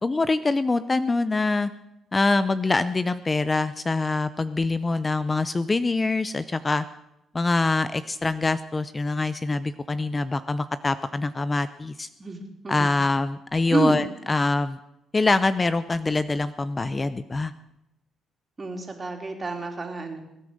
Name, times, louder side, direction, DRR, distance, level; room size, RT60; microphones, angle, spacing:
voice 1, 0.0-1.7 2.1-6.8 7.3-12.1 12.7-14.8 15.1-17.5, left 3 dB, 25° left, 13 dB, 0.6 m, -24 dB
voice 2, 12.2-12.9 13.7-14.0 18.6-20.2, right 3 dB, 30° right, 3 dB, 3.4 m, -28 dB
21.0 x 9.5 x 6.5 m, 0.88 s
cardioid pair, 90°, 0 cm